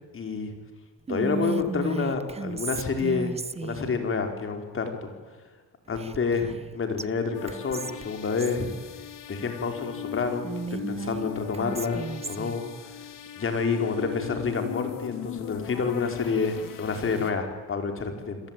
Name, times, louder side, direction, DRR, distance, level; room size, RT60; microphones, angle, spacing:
voice 1, 0.1-0.5 1.1-3.3 3.6-5.1 5.9-9.0 9.3-13.1 13.4-18.4, left 5 dB, 35° left, 5 dB, 4.7 m, -29 dB
Whispering, 1.1-3.9 5.9-6.7 7.0-7.1 7.5-8.6 10.4-12.6, right 4 dB, 15° right, 0.9 m, -34 dB
sound 1, 7.3-17.3, left 10 dB, 60° left, 3.3 m, -40 dB
28.5 x 22.5 x 9.2 m, 1.4 s
cardioid pair, 130°, 37 cm